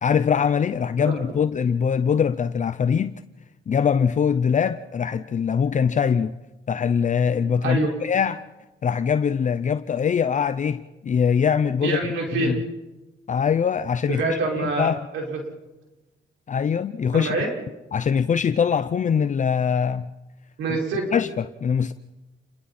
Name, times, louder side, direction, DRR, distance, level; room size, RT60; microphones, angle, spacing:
voice 1, 0.0-3.2 3.7-6.3 6.7-8.4 8.8-12.0 12.3-12.6 13.3-15.0 16.5-17.3 17.9-20.1 20.7-20.8 21.1-21.9, left 7 dB, 40° left, 0.6 m, -22 dB
voice 2, 7.6-7.9 11.8-12.5 14.1-15.4 17.1-17.5 20.6-21.1, right 3 dB, 85° right, 5.7 m, -26 dB
29.0 x 22.0 x 4.3 m
cardioid pair, 90°, 20 cm